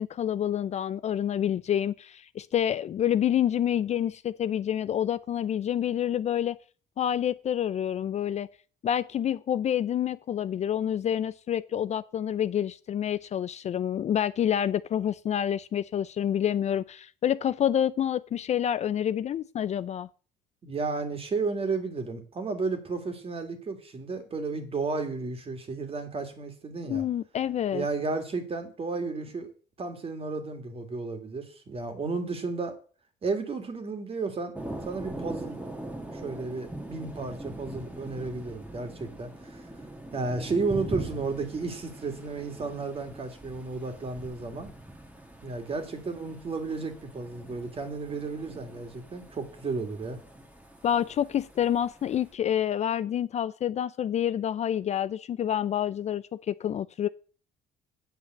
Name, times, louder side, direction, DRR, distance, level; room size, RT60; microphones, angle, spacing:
voice 1, 0.0-6.6 7.0-8.5 8.8-20.1 26.9-27.8 50.8-57.1, left 10 dB, 40° left, 0.4 m, -28 dB
voice 2, 20.6-27.0 27.7-29.5 29.8-32.8 33.2-34.5 34.9-35.6 36.1-39.7 40.1-44.7 45.4-50.2, right 4 dB, 35° right, 2.3 m, -33 dB
Thunder, 34.5-52.3, right 1 dB, 10° right, 1.7 m, -42 dB
8.7 x 5.5 x 7.9 m
cardioid pair, 110°, 17 cm